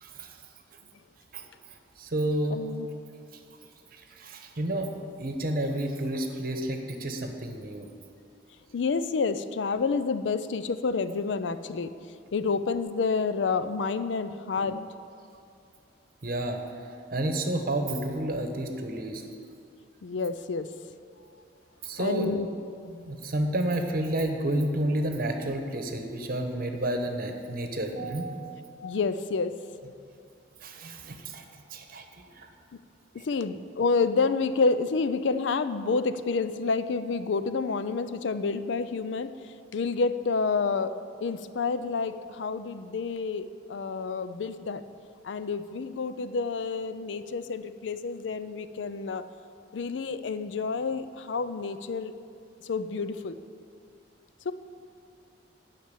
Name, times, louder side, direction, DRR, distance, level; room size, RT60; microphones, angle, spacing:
voice 1, 0.0-0.4 1.3-1.4 2.0-2.6 3.9-4.9 5.2-7.9 16.2-16.6 17.1-19.2 21.8-22.4 22.8-28.4 30.6-31.4 31.7-32.0 32.4-32.5 33.2-33.3, right 1 dB, 50° right, 5 dB, 1.0 m, -30 dB
voice 2, 2.5-2.9 8.7-11.9 12.3-14.9 20.0-20.7 22.0-22.5 28.8-29.5 33.3-39.3 39.7-40.9 41.2-44.8 45.2-49.2 49.7-52.1 52.6-53.4 54.5-54.6, left 4 dB, 75° left, 12 dB, 0.5 m, -29 dB
10.5 x 5.9 x 8.4 m, 2.4 s
head